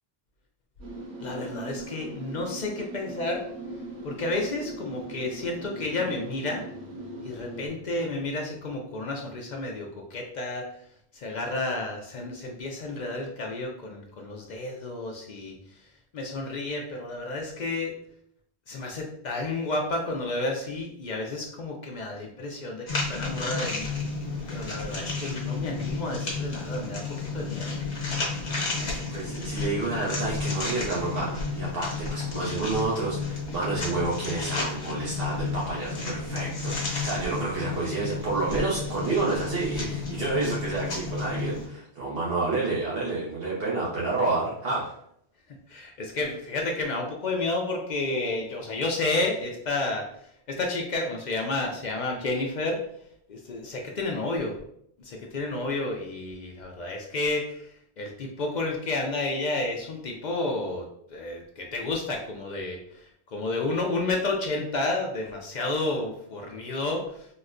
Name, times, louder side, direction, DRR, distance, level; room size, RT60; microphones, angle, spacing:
sound 1, 0.8-7.7, right 2 dB, 80° right, 1.4 m, -39 dB
voice 1, 1.2-3.4 4.0-6.7 7.2-10.7 11.1-15.6 16.1-17.9 18.7-23.9 24.5-27.7 45.7-50.1 50.5-52.8 53.3-54.6 55.0-57.7 58.0-63.0 63.3-67.3, left 2 dB, 55° left, 1 dB, 0.5 m, -31 dB
sound 2, 22.9-41.7, left 4 dB, 90° left, 1.2 m, -32 dB
voice 2, 28.8-44.9, right 3 dB, 65° right, -5 dB, 0.9 m, -29 dB
4.1 x 2.1 x 2.4 m, 0.69 s
omnidirectional pair, 1.1 m